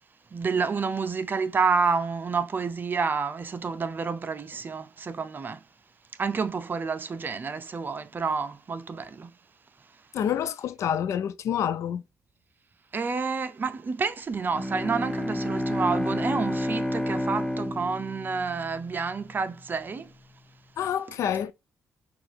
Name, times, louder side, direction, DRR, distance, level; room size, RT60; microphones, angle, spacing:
voice 1, 0.3-5.6 6.2-9.3 12.9-20.1, right 5 dB, 40° right, 0.6 m, -29 dB
voice 2, 10.1-12.0 20.8-21.5, left 9 dB, 75° left, 0.5 m, -27 dB
Bowed string instrument, 14.4-19.2, left 1 dB, 5° left, 0.6 m, -30 dB
5.9 x 2.5 x 3.3 m
cardioid pair, 80°, 5 cm